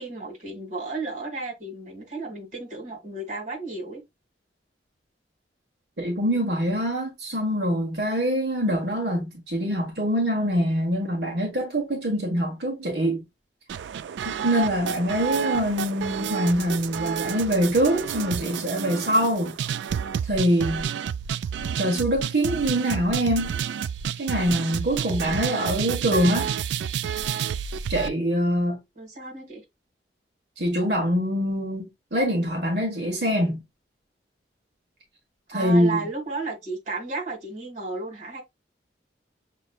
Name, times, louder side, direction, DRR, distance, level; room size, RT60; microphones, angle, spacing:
voice 1, 0.0-4.0 29.0-29.6 35.5-38.4, right 3 dB, 45° right, 2.0 m, -33 dB
voice 2, 6.0-13.2 14.2-19.6 20.3-20.9 21.8-23.5 24.2-26.5 27.9-28.8 30.6-33.6 35.5-36.1, equal, 70° right, 1.3 m, -24 dB
sound 1, 13.7-28.1, right 8 dB, 85° right, 0.3 m, -30 dB
6.4 x 3.0 x 2.3 m
head